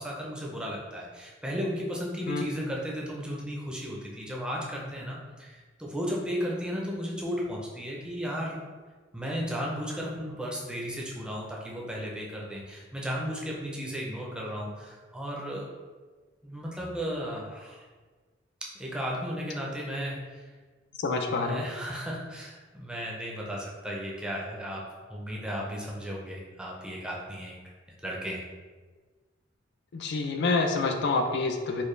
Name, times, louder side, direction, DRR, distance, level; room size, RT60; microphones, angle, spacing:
voice 1, 0.0-8.6 9.1-15.7 16.4-17.8 18.7-20.2 21.3-24.8 25.1-27.6 28.0-28.4, equal, 5° right, -3 dB, 0.6 m, -34 dB
voice 2, 21.0-21.7 29.9-31.8, left 3 dB, 60° left, 5 dB, 0.4 m, -27 dB
4.3 x 2.2 x 3.2 m, 1.4 s
head